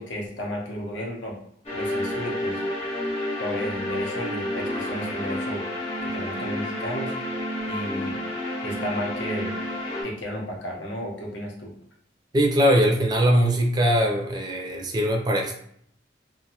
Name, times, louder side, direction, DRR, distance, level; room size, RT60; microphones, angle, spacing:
voice 1, 0.0-1.4 1.7-2.6 3.4-5.6 6.0-7.1 7.6-8.2 8.6-9.5 10.0-11.7, equal, 80° left, -1 dB, 0.7 m, -33 dB
sound 1, 1.7-10.0, left 1 dB, 35° left, 0.8 m, -30 dB
voice 2, 12.3-15.6, equal, 25° right, 1 dB, 0.4 m, -21 dB
2.5 x 2.3 x 2.8 m, 0.68 s
head